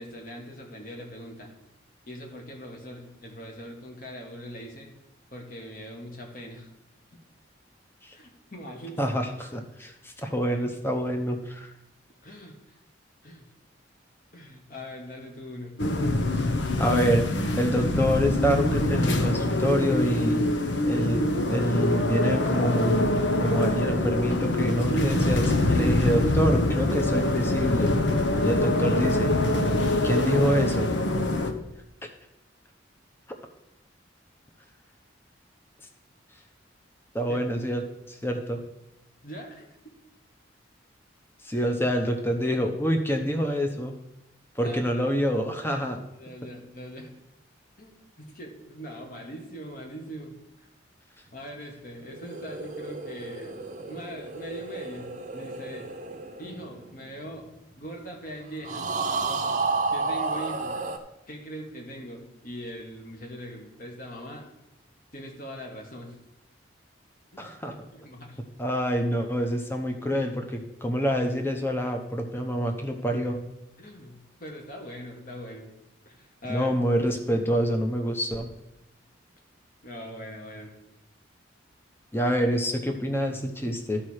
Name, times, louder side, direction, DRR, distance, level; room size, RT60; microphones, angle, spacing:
voice 1, 0.0-1.5 2.1-4.9 5.3-6.7 8.1-9.0 12.2-12.8 13.2-13.5 14.3-15.8 37.3-37.4 39.2-39.7 41.5-41.7 44.6-44.8 46.2-47.1 47.8-50.7 51.3-55.9 56.4-57.5 57.8-58.9 59.9-60.8 61.3-64.4 65.1-66.2 67.3-68.4 73.8-75.7 76.1-76.8 79.8-80.7, equal, 45° left, 1 dB, 1.8 m, -41 dB
voice 2, 9.0-11.7 16.8-17.3 17.6-20.5 20.9-21.2 21.5-27.9 28.4-29.3 30.0-30.9 37.1-37.8 38.2-38.6 41.4-44.0 44.6-46.0 67.4-67.7 68.6-73.4 76.5-78.5 82.1-84.0, equal, 10° left, 4 dB, 0.9 m, -26 dB
sound 1, 15.8-31.5, left 1 dB, 65° left, 0.9 m, -24 dB
sound 2, 52.0-57.6 58.6-61.0, right 3 dB, 40° right, 0.8 m, -32 dB
12.0 x 4.4 x 6.5 m, 0.86 s
head